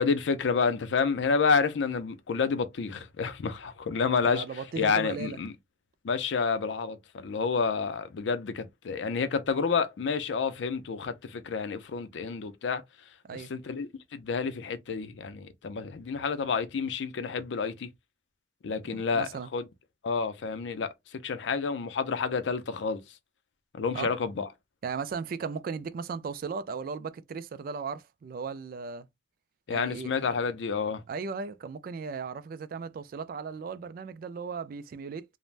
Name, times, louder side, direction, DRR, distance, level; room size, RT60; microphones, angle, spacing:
voice 1, 0.0-4.4 4.8-5.5 6.0-12.8 13.3-17.9 18.6-19.7 20.0-20.9 21.2-23.0 23.7-24.5 29.7-31.0, left 5 dB, 80° left, 0.4 m, -29 dB
voice 2, 4.2-5.4 13.2-13.5 18.9-19.5 23.9-24.1 24.8-29.1 29.7-30.3 31.1-35.2, right 5 dB, 50° right, 0.3 m, -36 dB
3.2 x 2.1 x 2.4 m
head